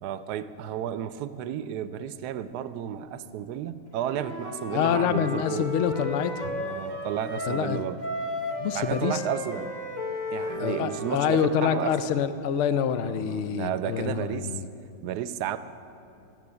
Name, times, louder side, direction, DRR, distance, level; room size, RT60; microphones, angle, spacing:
voice 1, 0.0-5.7 6.6-8.0 8.7-9.7 10.3-11.9 13.0-14.6 15.0-15.6, right 10 dB, 75° right, 13 dB, 1.1 m, -32 dB
Wind instrument woodwind instrument, 3.9-7.7 8.0-12.0, left 1 dB, 30° left, 1.2 m, -34 dB
voice 2, 4.7-6.6 7.5-7.8 8.6-9.2 10.6-14.7, left 8 dB, 80° left, 12 dB, 0.6 m, -26 dB
15.5 x 7.0 x 9.8 m, 2.9 s
omnidirectional pair, 1.9 m